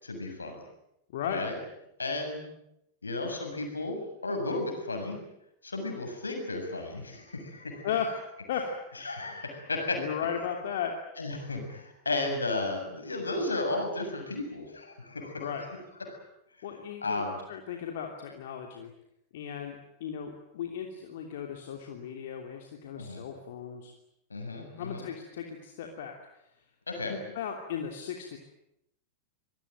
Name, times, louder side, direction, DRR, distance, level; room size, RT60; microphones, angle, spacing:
voice 1, 0.0-0.6 1.3-1.6 2.0-2.5 3.0-5.2 5.6-7.9 9.0-10.1 11.2-15.6 16.0-16.2 17.0-17.4 23.0-23.2 24.3-25.1 26.9-27.2, left 2 dB, 75° left, 4 dB, 7.2 m, -34 dB
voice 2, 1.1-1.4 7.8-8.1 8.5-8.7 10.0-10.9 15.4-15.7 16.6-18.9 19.3-23.9 24.8-26.2 27.1-28.4, left 8 dB, 55° left, 3 dB, 3.0 m, -36 dB
25.5 x 21.0 x 9.2 m, 0.81 s
figure-of-eight pair, 90°, 0 cm